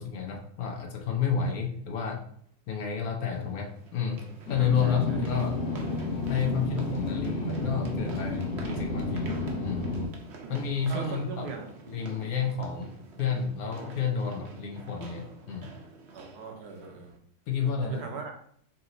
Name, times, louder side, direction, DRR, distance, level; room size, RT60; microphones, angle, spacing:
voice 1, 0.0-2.2 2.7-4.2 4.5-5.6 6.3-9.3 9.6-9.9 10.5-11.5 11.9-15.7 17.5-18.0, left 6 dB, 70° left, 2 dB, 1.2 m, -30 dB
sound 1, 1.4-1.5 3.3-17.2, right 3 dB, 55° right, 0.9 m, -47 dB
sound 2, 4.5-10.1, left 2 dB, 90° left, 1.6 m, -31 dB
voice 2, 4.6-5.2 10.4-11.7 16.1-17.1 17.6-18.3, right 4 dB, 80° right, 3 dB, 1.4 m, -41 dB
4.2 x 2.8 x 3.7 m, 0.62 s
omnidirectional pair, 1.7 m